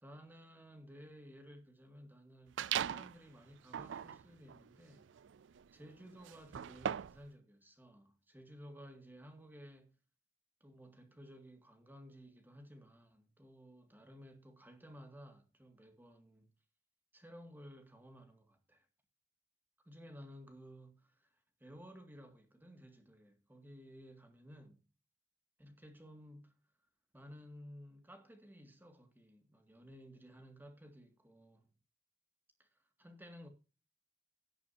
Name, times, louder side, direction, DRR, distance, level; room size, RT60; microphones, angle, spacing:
voice 1, 0.0-5.1 5.7-10.0 10.6-16.5 17.1-18.9 19.9-21.3 21.6-24.8 25.6-26.6 27.1-31.7 32.6-33.5, equal, 10° right, 2.0 m, -56 dB
sound 1, 2.6-3.2 3.6-7.3, right 9 dB, 80° right, 0.4 m, -40 dB
17.5 x 6.8 x 2.7 m
head